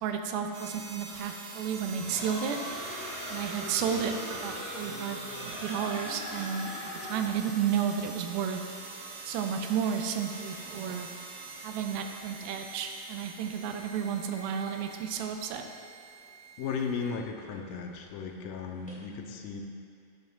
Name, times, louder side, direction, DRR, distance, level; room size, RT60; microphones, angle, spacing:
voice 1, 0.0-2.6 3.3-5.2 5.5-6.7 7.0-8.6 9.2-11.1 11.6-15.7, right 8 dB, 85° right, 5 dB, 2.4 m, -32 dB
sound 1, 0.5-17.1, right 3 dB, 70° right, 2.8 m, -45 dB
sound 2, 2.0-7.4, left 1 dB, 35° left, 1.2 m, -40 dB
sound 3, 9.8-19.1, right 3 dB, 5° left, 0.8 m, -54 dB
voice 2, 16.6-19.6, left 5 dB, 80° left, 2 dB, 2.1 m, -35 dB
17.0 x 6.7 x 2.3 m, 2.3 s
omnidirectional pair, 4.3 m